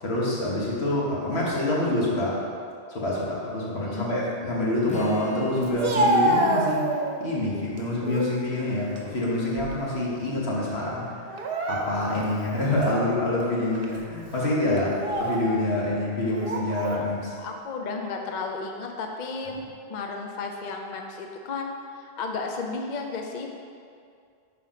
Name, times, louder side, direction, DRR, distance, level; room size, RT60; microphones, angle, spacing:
voice 1, 0.0-2.4 2.9-6.8 7.2-11.2 11.7-17.3, left 1 dB, 80° left, -5 dB, 1.6 m, -26 dB
voice 2, 3.8-4.2 16.9-17.1 17.4-19.6 19.9-23.5, left 4 dB, 55° left, 2 dB, 0.6 m, -33 dB
Strum, 4.9-9.0, right 3 dB, 15° left, 0.3 m, -39 dB
Speech, 5.6-7.3 7.8-8.3 8.8-10.0 10.3-10.5 11.3-12.3 12.8-12.9 13.7-14.0 14.8-15.5 16.3-17.0, right 1 dB, 65° right, 0.8 m, -27 dB
5.1 x 4.1 x 5.7 m, 2.3 s
omnidirectional pair, 1.1 m